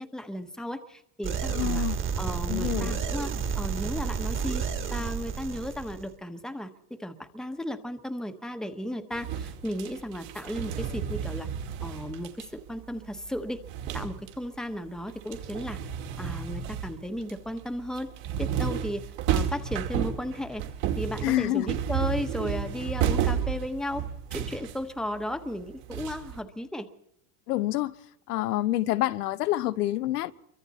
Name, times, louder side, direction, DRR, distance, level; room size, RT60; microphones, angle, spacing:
voice 1, 0.0-1.8 2.2-4.6 4.9-11.5 11.8-13.6 13.9-15.8 16.2-18.1 18.4-19.0 19.3-20.6 21.0-24.0 24.3-26.9, left 1 dB, ahead, 1.2 m, -35 dB
sound 1, 1.2-6.1, right 6 dB, 25° right, 1.9 m, -31 dB
voice 2, 1.5-2.0 2.5-3.0 21.2-21.7 27.5-27.9 28.3-30.3, left 15 dB, 85° left, 1.1 m, -27 dB
sound 2, 9.1-14.6 14.9-26.4, right 8 dB, 60° right, 2.7 m, -32 dB
27.5 x 24.0 x 4.2 m
supercardioid pair, 130°, 45 cm